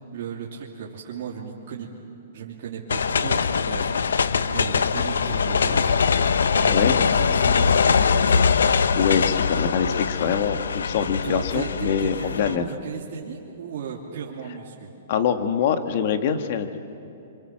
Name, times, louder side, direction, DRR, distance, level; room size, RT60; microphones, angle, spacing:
voice 1, 0.1-1.9 2.3-8.5 11.2-14.9, right 7 dB, 60° right, -3 dB, 2.9 m, -36 dB
sound 1, 2.9-12.6, left 6 dB, 90° left, 0.9 m, -22 dB
voice 2, 8.7-12.6 15.1-16.8, left 7 dB, 55° left, 8 dB, 1.7 m, -24 dB
26.0 x 25.5 x 7.6 m, 3.0 s
hypercardioid pair, 140°, 0 cm